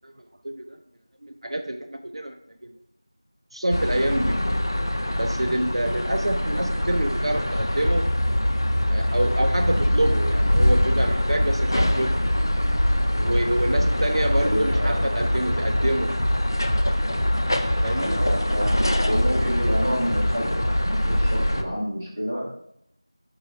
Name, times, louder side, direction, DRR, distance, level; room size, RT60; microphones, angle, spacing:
voice 1, 0.0-0.8 1.2-2.4 2.6-2.7 3.5-4.4 5.2-8.1 8.9-12.3 13.2-16.2 17.8-18.2, right 1 dB, 80° right, 4 dB, 0.4 m, -27 dB
sound 1, 3.7-21.6, left 1 dB, 50° left, 0.4 m, -23 dB
voice 2, 14.4-15.1 17.9-22.4, equal, 15° right, -8 dB, 0.7 m, -29 dB
4.4 x 2.3 x 4.7 m, 0.72 s
figure-of-eight pair, 180°, 3 cm